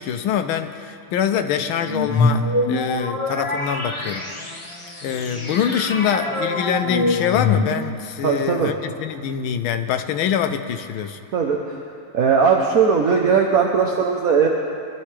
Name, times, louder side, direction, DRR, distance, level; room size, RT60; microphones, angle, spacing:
voice 1, 0.0-4.3 5.0-11.2, left 8 dB, 75° left, 7 dB, 1.5 m, -24 dB
sound 1, 1.8-8.1, left 2 dB, 25° left, 0.6 m, -24 dB
voice 2, 8.2-8.7 11.3-11.8 12.1-14.5, right 6 dB, 55° right, 1 dB, 1.0 m, -18 dB
22.0 x 12.0 x 3.3 m, 2.3 s
omnidirectional pair, 2.4 m